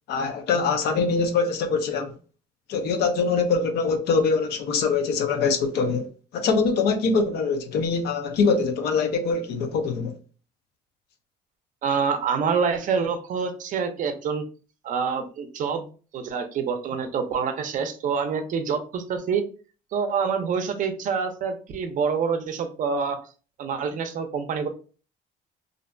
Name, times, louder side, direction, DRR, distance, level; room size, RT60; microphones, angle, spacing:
voice 1, 0.1-2.1 2.7-10.1, left 4 dB, 75° left, 0.5 m, -23 dB
voice 2, 11.8-14.4 14.8-15.9 16.1-19.4 19.9-23.2 23.6-24.7, right 6 dB, 50° right, 0.5 m, -26 dB
2.5 x 2.1 x 2.5 m
cardioid pair, 110°, 17 cm